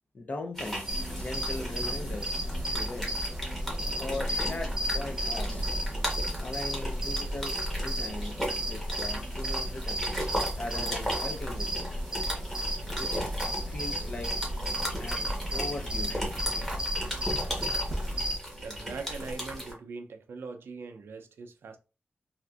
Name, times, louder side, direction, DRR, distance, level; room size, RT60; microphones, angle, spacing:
voice 1, 0.1-2.4 2.7-3.2 4.0-5.7 6.4-10.1 10.6-12.1 12.9-13.2 13.6-14.4 15.0-16.5 17.2-17.3, left 2 dB, 40° left, 0.6 m, -39 dB
sound 1, 0.5-19.7, equal, 10° left, 1.1 m, -37 dB
sound 2, 0.9-18.4, equal, 20° right, 0.9 m, -33 dB
voice 2, 18.6-21.8, right 4 dB, 80° right, 0.4 m, -41 dB
3.4 x 2.5 x 2.4 m
wide cardioid pair, 130°, 4 cm